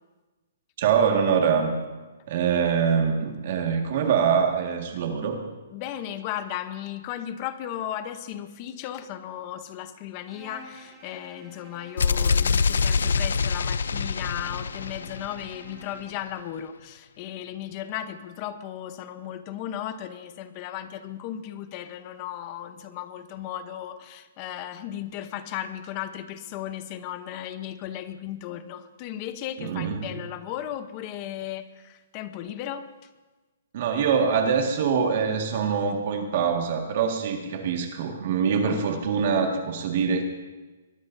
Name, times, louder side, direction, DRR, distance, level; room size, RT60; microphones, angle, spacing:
voice 1, 0.8-1.7 2.3-5.4 29.6-30.1 33.7-40.2, right 6 dB, 40° right, 3 dB, 1.7 m, -24 dB
voice 2, 5.7-33.1, left 11 dB, 25° left, 11 dB, 0.8 m, -36 dB
Bowed string instrument, 10.3-16.3, right 2 dB, 5° right, 2.0 m, -50 dB
sound 1, 12.0-15.8, left 5 dB, 80° left, 0.5 m, -25 dB
23.0 x 20.0 x 2.7 m, 1.2 s
hypercardioid pair, 175°, 0 cm